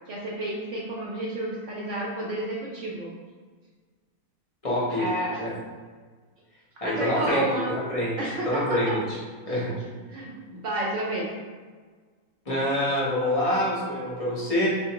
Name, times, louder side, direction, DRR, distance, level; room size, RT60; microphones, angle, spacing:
voice 1, 0.1-3.1 4.9-5.4 6.8-7.7 8.2-9.0 9.5-9.6 9.9-11.3, right 1 dB, 65° right, -3 dB, 0.8 m, -31 dB
voice 2, 4.6-5.1 5.4-5.6 6.8-8.2 8.4-9.2 9.5-9.7 12.5-14.7, left 1 dB, 40° left, -6 dB, 0.5 m, -26 dB
3.7 x 2.4 x 2.8 m, 1.5 s
omnidirectional pair, 1.6 m